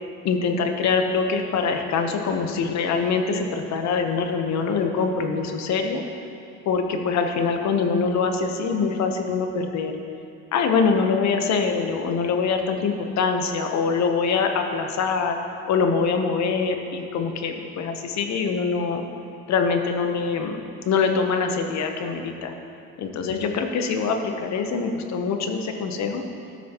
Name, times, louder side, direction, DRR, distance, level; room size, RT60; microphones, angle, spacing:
voice 1, 0.2-6.0 6.7-10.0 10.5-15.4 15.7-19.0 19.5-20.6 20.8-22.5 23.0-26.2, left 5 dB, 45° left, 5 dB, 0.9 m, -24 dB
14.0 x 6.2 x 2.9 m, 2.6 s
supercardioid pair, 115°, 38 cm